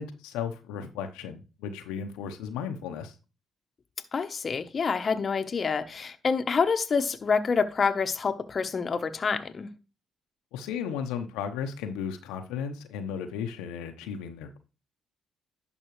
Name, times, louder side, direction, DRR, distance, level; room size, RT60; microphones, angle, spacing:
voice 1, 0.0-3.2 10.5-14.6, left 7 dB, 85° left, 0.8 m, -35 dB
voice 2, 4.1-9.7, left 5 dB, 45° left, 1.0 m, -27 dB
11.0 x 5.4 x 3.1 m
supercardioid pair, 55°, 0 cm